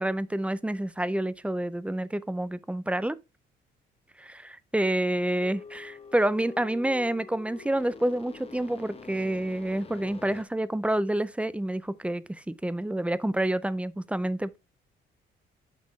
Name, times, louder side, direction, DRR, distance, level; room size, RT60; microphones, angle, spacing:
voice 1, 0.0-3.2 4.3-14.6, right 1 dB, 5° right, 0.4 m, -28 dB
sound 1, 5.4-10.4, left 4 dB, 30° left, 0.9 m, -46 dB
7.4 x 5.3 x 3.0 m
cardioid pair, 90°, 20 cm